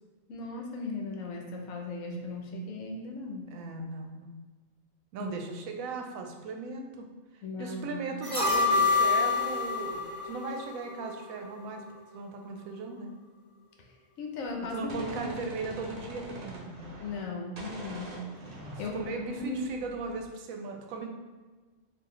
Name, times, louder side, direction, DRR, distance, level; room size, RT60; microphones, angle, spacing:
voice 1, 0.3-3.5 5.2-5.3 7.4-8.0 14.2-15.4 17.0-18.3 18.8-19.6, left 3 dB, 80° left, 1 dB, 1.0 m, -37 dB
voice 2, 3.5-4.3 5.1-7.1 7.3-11.8 12.1-13.1 14.7-16.8 18.9-21.1, right 3 dB, 85° right, 3 dB, 1.0 m, -37 dB
sound 1, 8.2-11.4 11.7-11.8, left 4 dB, 25° left, 1.1 m, -27 dB
Gunshot gunfire, 14.4-17.3 17.6-20.3, right 1 dB, 35° right, 0.7 m, -44 dB
3.8 x 2.6 x 3.0 m, 1.3 s
omnidirectional pair, 1.4 m